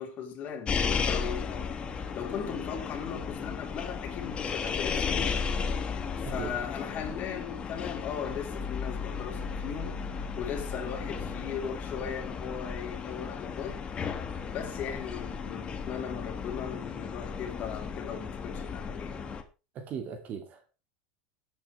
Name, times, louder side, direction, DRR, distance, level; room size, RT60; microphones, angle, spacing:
voice 1, 0.0-5.4 5.9-13.8 14.5-19.2, left 7 dB, 40° left, 3.6 m, -38 dB
sound 1, 0.7-19.4, left 5 dB, 25° left, 1.7 m, -34 dB
voice 2, 6.2-6.5 19.7-20.7, right 7 dB, 40° right, 2.5 m, -38 dB
18.0 x 8.3 x 3.3 m
supercardioid pair, 120°, 4 cm